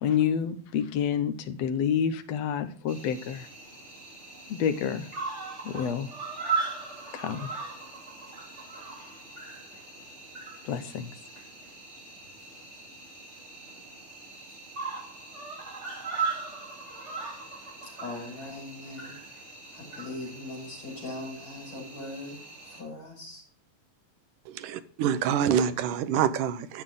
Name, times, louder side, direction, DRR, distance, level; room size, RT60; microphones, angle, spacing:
voice 1, 0.0-3.5 4.5-5.0 5.7-6.1 7.1-7.5 10.7-11.1, left 8 dB, 65° left, 9 dB, 1.9 m, -28 dB
Cricket, 2.9-22.8, right 4 dB, 25° right, 2.5 m, -39 dB
voice 2, 17.8-19.1 19.7-22.4 22.7-23.4 25.3-25.7, left 2 dB, 35° left, 0 dB, 6.9 m, -40 dB
voice 3, 24.5-26.8, right 8 dB, 80° right, 11 dB, 2.4 m, -26 dB
11.5 x 8.4 x 3.7 m, 0.43 s
omnidirectional pair, 3.7 m